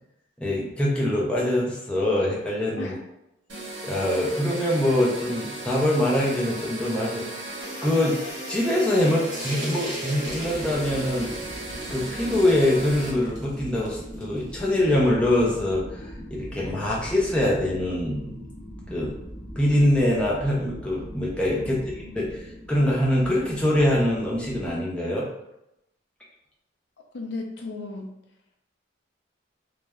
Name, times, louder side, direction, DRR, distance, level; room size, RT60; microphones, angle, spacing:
voice 1, 0.4-2.9 3.8-7.5 7.8-8.2 8.5-11.3 11.9-16.0 16.3-18.4 18.9-19.1 19.6-21.8 22.2-25.3, left 1 dB, 5° left, -5 dB, 0.4 m, -24 dB
sound 1, 3.5-13.1, right 2 dB, 60° right, 0.7 m, -36 dB
sound 2, 9.3-14.6, equal, 20° right, 0.7 m, -40 dB
sound 3, 10.3-24.7, equal, 40° left, 0.8 m, -40 dB
voice 2, 21.6-22.4 27.1-28.1, left 2 dB, 65° left, 2 dB, 0.4 m, -36 dB
3.0 x 2.1 x 2.2 m, 0.85 s
head